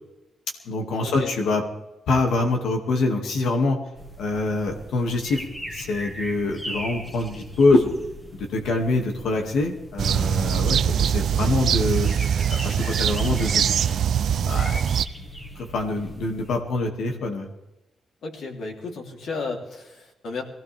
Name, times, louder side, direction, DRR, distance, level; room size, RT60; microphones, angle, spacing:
voice 1, 0.7-1.6 2.1-3.8 4.2-5.4 5.7-7.9 8.4-12.1 12.5-13.6 14.5-14.8 15.6-17.5, left 2 dB, 85° left, 3 dB, 2.2 m, -24 dB
sound 1, 3.9-16.6, equal, 10° left, 1.6 m, -39 dB
sound 2, 10.0-15.1, right 9 dB, 65° right, 0.4 m, -22 dB
voice 2, 18.2-20.4, left 4 dB, 70° left, 0 dB, 3.3 m, -33 dB
22.5 x 16.0 x 3.5 m, 0.99 s
wide cardioid pair, 170°, 0 cm